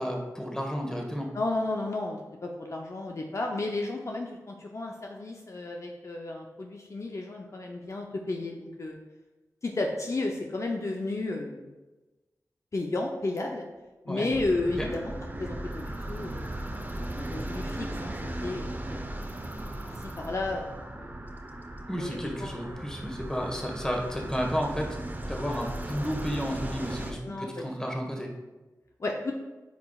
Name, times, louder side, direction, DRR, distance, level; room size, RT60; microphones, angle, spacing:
voice 1, 0.0-1.3 14.1-14.3 14.8-14.9 21.9-25.0 25.3-28.3, equal, 10° left, 0 dB, 1.4 m, -32 dB
voice 2, 1.3-9.0 9.6-11.7 12.7-13.7 14.1-15.1 15.4-16.5 17.1-18.1 18.4-19.2 19.9-21.2 22.0-22.6 27.2-27.6 29.0-29.3, left 2 dB, 50° left, 1 dB, 0.6 m, -33 dB
sound 1, 14.3-27.1, right 1 dB, 30° right, 0.8 m, -37 dB
9.2 x 4.8 x 2.4 m, 1.2 s
cardioid pair, 50°, 6 cm